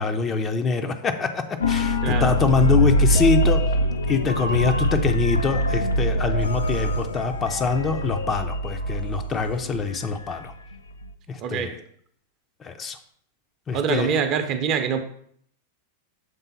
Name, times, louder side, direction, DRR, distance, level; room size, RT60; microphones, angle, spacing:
voice 1, 0.0-3.6 4.1-10.5 11.3-11.8 12.6-13.0 13.7-14.1, left 4 dB, 20° left, 6 dB, 0.6 m, -24 dB
sound 1, 1.6-10.7 11.0-11.1, left 1 dB, 75° left, 0.4 m, -23 dB
voice 2, 11.4-11.8 13.7-15.0, right 7 dB, 35° right, 7 dB, 0.7 m, -24 dB
6.8 x 3.7 x 4.1 m, 0.63 s
figure-of-eight pair, 90°, 0 cm